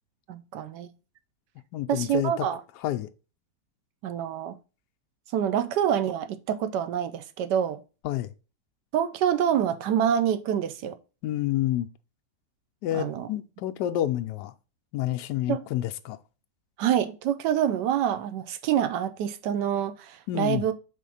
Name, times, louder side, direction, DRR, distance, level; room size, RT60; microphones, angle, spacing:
voice 1, 0.3-0.9 1.9-2.6 4.0-4.6 5.3-7.8 8.9-10.9 12.9-13.3 15.5-15.6 16.8-20.7, right 9 dB, 80° right, 1.2 m, -26 dB
voice 2, 1.7-2.5 2.8-3.1 8.0-8.3 11.2-11.9 12.8-14.5 14.9-16.2 20.3-20.6, left 13 dB, 75° left, 1.1 m, -28 dB
5.0 x 3.6 x 5.5 m
omnidirectional pair, 1.9 m